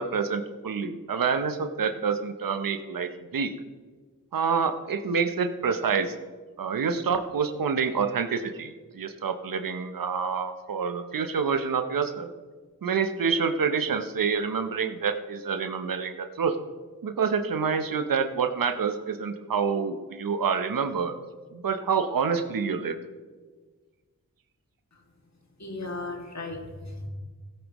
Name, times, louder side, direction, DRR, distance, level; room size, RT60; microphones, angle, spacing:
voice 1, 0.0-3.5 4.3-6.1 6.6-12.3 12.8-16.6 17.0-21.2 21.5-23.0, right 6 dB, 80° right, 8 dB, 0.9 m, -27 dB
voice 2, 25.6-27.1, left 2 dB, 55° left, 1 dB, 2.3 m, -36 dB
16.0 x 8.8 x 3.1 m, 1.4 s
cardioid pair, 40°, 34 cm